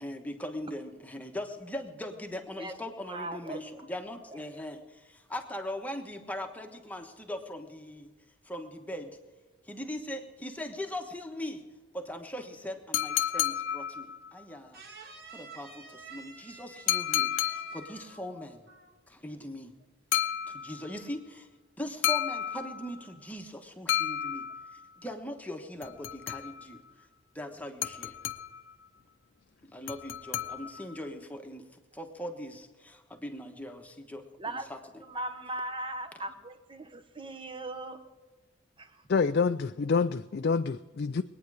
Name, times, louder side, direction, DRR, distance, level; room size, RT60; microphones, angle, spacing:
voice 1, 0.0-8.1 8.4-9.2 9.6-11.6 11.9-14.8 15.3-18.7 19.1-19.7 20.5-21.5 21.8-24.5 24.7-26.8 27.3-28.1 29.7-31.7 31.9-35.0 36.3-36.4, left 1 dB, 10° left, 4 dB, 1.2 m, -40 dB
voice 2, 3.0-3.6 34.4-34.7 35.0-38.0 38.8-39.0, right 2 dB, 25° right, 9 dB, 1.1 m, -38 dB
sound 1, 12.9-14.4 16.9-18.0 20.1-21.0 22.0-23.1 23.9-24.9 25.8-26.8 27.8-28.7 29.9-31.0, left 11 dB, 70° left, 0.7 m, -32 dB
sound 2, 14.7-18.4 18.7-19.0, right 5 dB, 50° right, 1.8 m, -50 dB
voice 3, 39.1-41.2, left 5 dB, 50° left, 9 dB, 0.4 m, -27 dB
22.5 x 9.4 x 4.9 m, 1.3 s
head